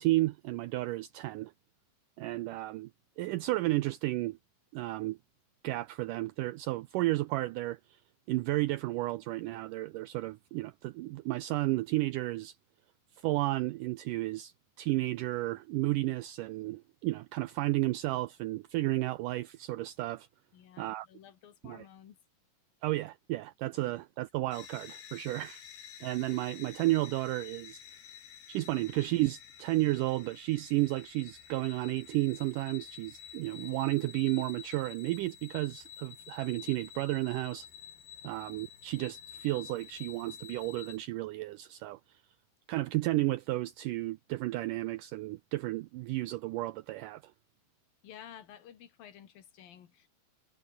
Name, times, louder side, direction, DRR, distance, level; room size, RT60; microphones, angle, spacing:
voice 1, 0.0-1.5 2.2-2.9 3.2-4.4 4.7-5.2 5.6-8.0 8.3-12.6 13.2-20.3 20.8-21.1 21.6-21.8 22.8-25.6 26.0-27.8 28.5-37.7 38.2-42.2 42.7-47.3, right 18 dB, 85° right, 1.9 m, -32 dB
voice 2, 20.5-22.2 48.0-50.1, left 9 dB, 70° left, 3.8 m, -52 dB
sound 1, 24.5-41.0, left 8 dB, 85° left, 4.8 m, -50 dB
omnidirectional pair, 4.4 m